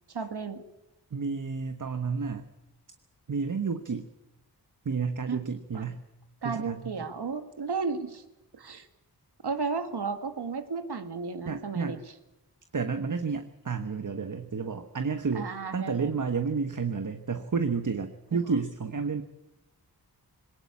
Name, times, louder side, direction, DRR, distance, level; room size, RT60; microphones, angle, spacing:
voice 1, 0.1-0.6 5.3-5.4 5.7-5.8 6.4-8.2 8.5-8.9 9.4-12.0 15.3-16.1 18.3-18.5, right 4 dB, 80° right, 8 dB, 2.1 m, -34 dB
voice 2, 1.1-2.5 3.3-4.1 4.8-6.0 6.4-6.9 11.5-12.0 12.7-19.2, right 5 dB, 50° right, 8 dB, 1.3 m, -31 dB
21.0 x 19.0 x 8.5 m, 0.95 s
wide cardioid pair, 85°, 39 cm